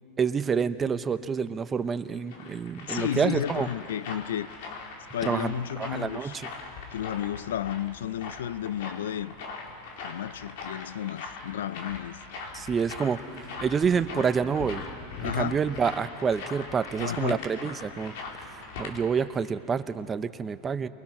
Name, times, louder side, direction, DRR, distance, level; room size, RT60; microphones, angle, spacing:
voice 1, 0.2-3.7 5.2-6.5 12.5-13.2 13.6-14.8 15.2-18.1 18.4-20.9, right 6 dB, 20° right, 0.8 m, -28 dB
sound 1, 1.9-18.9, left 4 dB, 65° left, 3.6 m, -41 dB
voice 2, 2.9-4.5 5.1-6.4 6.9-9.3 10.0-12.2 15.2-15.6 17.0-17.4, left 10 dB, 85° left, 0.4 m, -32 dB
28.5 x 22.5 x 6.0 m
supercardioid pair, 120°, 0 cm